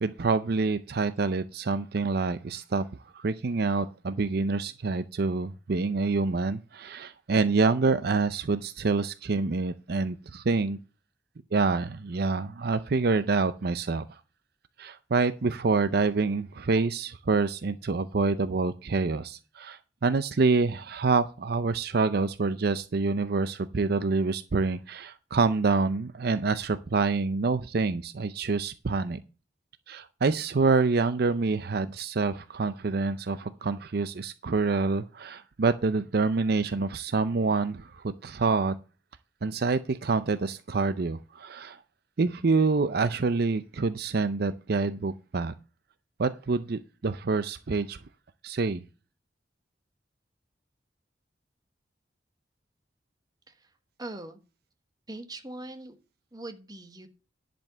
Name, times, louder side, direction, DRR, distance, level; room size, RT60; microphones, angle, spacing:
voice 1, 0.0-2.8 3.1-10.8 11.5-14.2 14.8-29.2 29.9-38.7 39.4-41.8 42.2-45.5 46.2-48.0 48.4-48.8, right 4 dB, 60° right, 0.5 m, -27 dB
voice 2, 54.0-54.4 55.1-56.0 56.3-57.1, right 2 dB, 20° right, 1.2 m, -41 dB
10.5 x 5.2 x 6.6 m
head